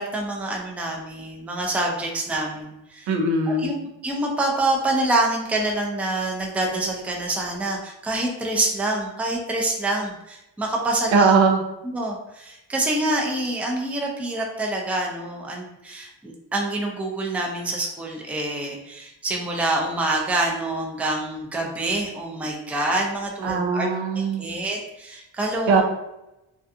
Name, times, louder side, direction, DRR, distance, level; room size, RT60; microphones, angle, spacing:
voice 1, 0.0-3.1 3.5-11.3 11.8-23.9 24.1-25.8, right 2 dB, 5° right, 0 dB, 0.4 m, -26 dB
voice 2, 3.1-3.7 11.1-11.6 23.4-24.5 25.7-25.8, right 4 dB, 75° right, 3 dB, 0.6 m, -20 dB
2.4 x 2.3 x 2.6 m, 0.90 s
cardioid pair, 75°, 45 cm